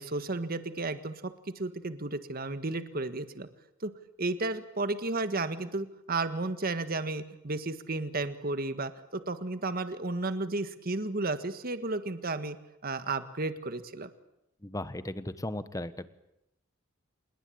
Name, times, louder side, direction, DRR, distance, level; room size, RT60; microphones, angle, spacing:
voice 1, 0.0-3.5 3.8-3.9 4.2-12.6 12.8-14.1, right 2 dB, 50° right, 11 dB, 1.7 m, -33 dB
voice 2, 14.6-16.1, left 1 dB, 15° left, 13 dB, 1.3 m, -36 dB
27.0 x 21.5 x 8.7 m, 0.83 s
head